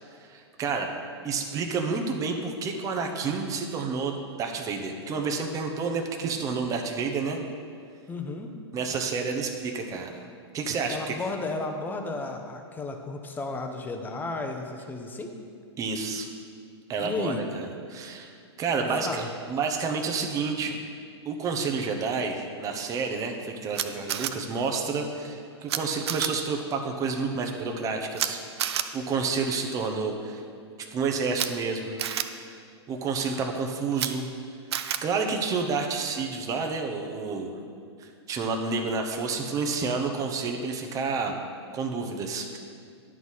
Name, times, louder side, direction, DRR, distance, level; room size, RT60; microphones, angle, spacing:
voice 1, 0.2-0.9 1.2-7.4 8.7-10.3 10.5-11.2 15.8-16.3 16.9-20.8 21.2-30.4 30.8-32.0 32.9-34.3 34.7-37.5 38.0-41.4 41.7-42.6, right 4 dB, 25° right, 3 dB, 0.8 m, -30 dB
voice 2, 8.1-8.5 10.9-15.3 17.0-17.4 18.8-19.3, left 3 dB, 10° left, 4 dB, 0.8 m, -33 dB
Camera, 23.7-24.3 25.7-25.8 26.1-26.3 28.1-28.3 28.6-28.8 31.3-31.5 32.0-32.2 33.9-34.1 34.7-35.0, right 10 dB, 65° right, 0.5 m, -28 dB
10.5 x 4.0 x 6.4 m, 2.2 s
hypercardioid pair, 120°, 15 cm